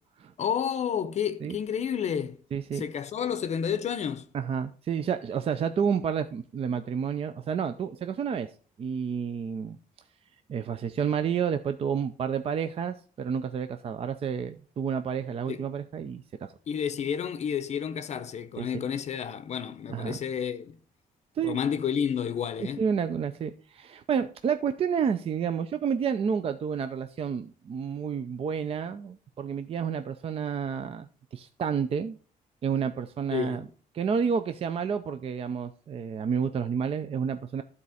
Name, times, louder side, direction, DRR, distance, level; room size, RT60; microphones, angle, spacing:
voice 1, 0.4-2.4 2.7-4.3 15.5-15.6 16.7-20.8 21.4-22.8 33.3-33.7, left 8 dB, 45° left, 0.6 m, -30 dB
voice 2, 2.5-2.8 4.3-8.5 8.8-9.8 10.5-16.5 18.6-18.8 19.9-20.2 21.4-21.6 22.8-31.1 31.3-32.2 32.6-33.7 33.9-37.6, right 7 dB, 40° right, 0.5 m, -30 dB
12.0 x 4.2 x 4.9 m
cardioid pair, 135°, 15 cm